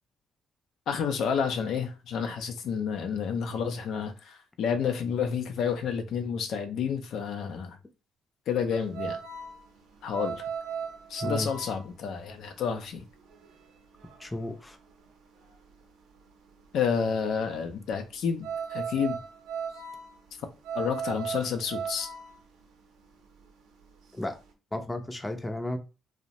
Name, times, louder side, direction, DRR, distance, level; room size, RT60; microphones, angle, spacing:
voice 1, 0.9-7.8 8.5-9.2 10.0-10.4 11.1-13.0 16.7-19.2 20.7-22.1, left 6 dB, 75° left, 0.4 m, -30 dB
sound 1, 8.7-24.5, right 6 dB, 90° right, 0.5 m, -38 dB
voice 2, 14.2-14.8 24.1-24.4 24.7-25.8, left 1 dB, 15° left, 0.4 m, -33 dB
2.6 x 2.0 x 2.9 m
cardioid pair, 90°, 0 cm